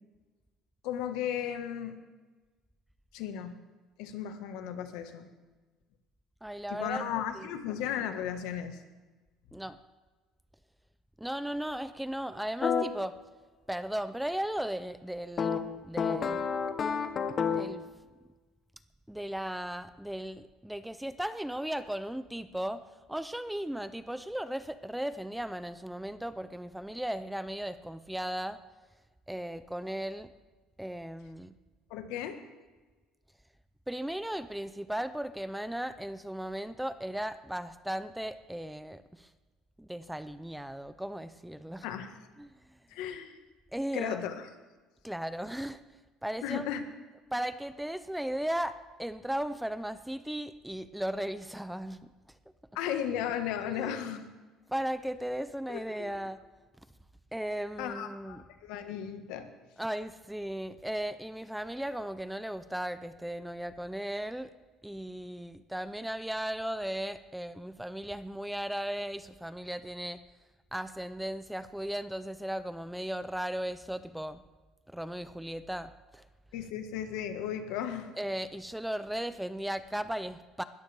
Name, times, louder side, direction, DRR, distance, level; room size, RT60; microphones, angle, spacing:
voice 1, 0.8-1.9 3.1-3.5 4.0-5.3 6.7-8.8 31.9-32.4 41.8-42.1 42.9-43.4 43.9-44.5 46.4-46.8 52.7-54.2 55.7-56.2 57.8-59.5 76.5-78.1, left 9 dB, 80° left, 7 dB, 1.4 m, -35 dB
voice 2, 6.4-7.0 7.3-7.5 9.5-9.8 11.2-13.2 13.7-15.6 15.8-16.5 17.5-17.8 19.1-22.8 23.1-28.6 29.3-30.3 30.8-31.5 33.9-39.3 39.8-41.9 42.4-42.5 43.7-44.3 45.0-45.8 46.2-46.7 47.3-52.1 53.6-54.0 54.7-56.4 57.3-58.4 59.8-64.5 64.8-70.2 70.7-74.4 74.9-76.2 78.2-80.6, right 1 dB, 5° right, 13 dB, 0.4 m, -36 dB
sound 1, 12.6-12.9 15.4-17.8, left 6 dB, 30° left, 0.9 m, -30 dB
20.5 x 13.5 x 3.4 m, 1.3 s
cardioid pair, 160°, 0 cm